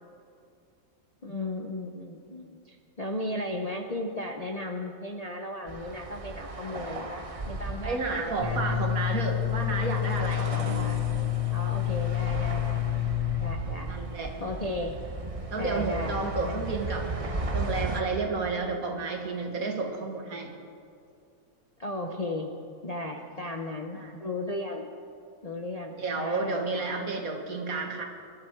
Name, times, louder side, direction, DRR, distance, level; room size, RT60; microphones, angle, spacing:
voice 1, 1.2-8.8 10.4-11.0 11.5-13.0 13.4-14.0 14.4-15.0 15.6-16.6 21.8-22.5 22.8-24.9 25.4-26.9, left 1 dB, 35° left, 2 dB, 0.7 m, -36 dB
sound 1, 5.7-18.0, right 2 dB, 30° right, 0.7 m, -36 dB
voice 2, 7.8-10.4 13.9-14.3 15.5-17.1 17.5-20.5 24.0-24.1 26.0-28.0, right 3 dB, 65° right, 2 dB, 2.0 m, -31 dB
sound 2, 8.4-13.4, left 15 dB, 80° left, 4.4 m, -28 dB
21.0 x 13.0 x 4.6 m, 2.5 s
omnidirectional pair, 1.7 m